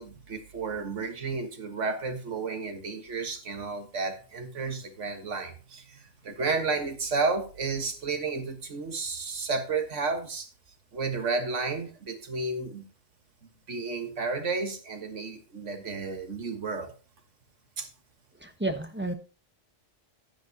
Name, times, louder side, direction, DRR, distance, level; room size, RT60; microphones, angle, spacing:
voice 1, 0.0-10.5 10.9-12.8 13.7-16.9 17.8-17.9, right 4 dB, 75° right, 6 dB, 1.8 m, -32 dB
voice 2, 18.4-19.1, right 2 dB, 10° right, 6 dB, 1.0 m, -31 dB
10.5 x 9.8 x 2.9 m, 0.34 s
omnidirectional pair, 1.3 m